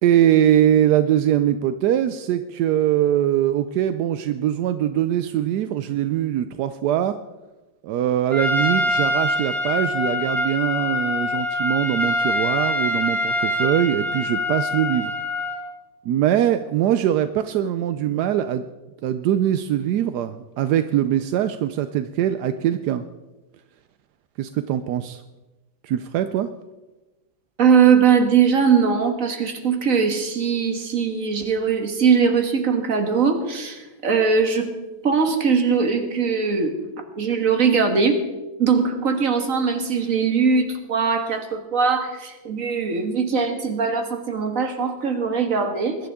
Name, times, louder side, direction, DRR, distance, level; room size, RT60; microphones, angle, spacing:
voice 1, 0.0-7.2 7.8-15.1 16.0-18.6 19.0-23.0 24.4-25.2 25.8-26.5, right 11 dB, 75° right, 11 dB, 1.0 m, -22 dB
Trumpet, 8.3-15.6, left 1 dB, ahead, 2.3 m, -24 dB
voice 2, 27.6-34.7 35.0-36.8 37.1-38.2 38.6-46.0, right 6 dB, 45° right, 5 dB, 1.8 m, -20 dB
21.5 x 11.5 x 3.6 m, 1.1 s
omnidirectional pair, 2.1 m